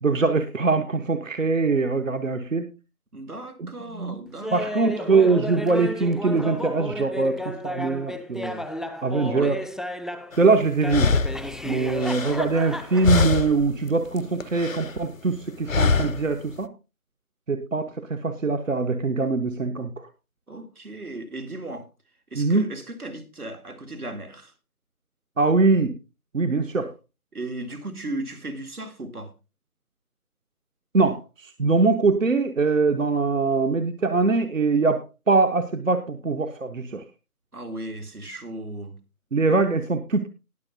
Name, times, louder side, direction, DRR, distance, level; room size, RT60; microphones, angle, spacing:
voice 1, 0.0-2.7 3.6-4.2 4.5-8.6 9.0-9.6 10.4-11.1 11.6-16.7 17.5-19.9 22.3-22.7 25.4-25.9 26.3-26.9 30.9-37.0 39.3-40.3, right 3 dB, 60° right, 1.1 m, -22 dB
voice 2, 3.1-4.9 9.2-9.5 20.5-21.9 22.3-24.5 27.3-29.3 37.5-39.0 39.5-39.6, right 2 dB, 80° right, 2.3 m, -36 dB
Laughter, 4.4-10.4 10.8-13.4, left 1 dB, ahead, 0.4 m, -33 dB
sound 1, 10.3-10.4 10.9-12.8 13.0-13.7 14.1-15.0 15.7-16.3, left 4 dB, 65° left, 0.7 m, -24 dB
19.5 x 7.2 x 2.6 m
figure-of-eight pair, 165°, 44 cm